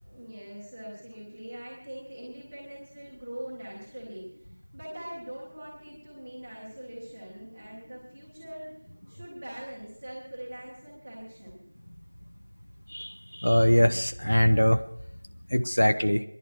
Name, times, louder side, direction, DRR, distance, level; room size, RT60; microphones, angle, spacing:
voice 1, 0.0-11.6, right 1 dB, 10° right, -5 dB, 1.9 m, -42 dB
voice 2, 12.9-14.8 15.5-16.2, equal, 60° left, 9 dB, 0.8 m, -22 dB
24.0 x 11.0 x 4.5 m, 0.73 s
figure-of-eight pair, 180°, 0 cm